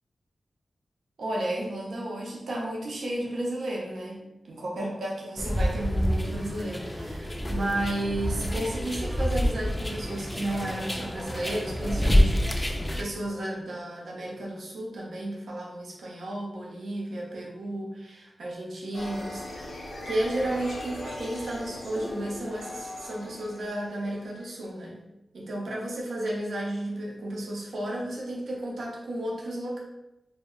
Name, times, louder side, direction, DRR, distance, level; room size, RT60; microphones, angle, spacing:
voice 1, 1.2-12.4 13.0-25.0 25.3-29.8, right 1 dB, 80° right, -3 dB, 0.5 m, -33 dB
sound 1, 5.4-13.0, equal, 20° left, 0.3 m, -27 dB
sound 2, 18.9-24.5, left 1 dB, 75° left, 0.7 m, -39 dB
2.1 x 2.0 x 3.6 m, 0.93 s
cardioid pair, 55°, 0 cm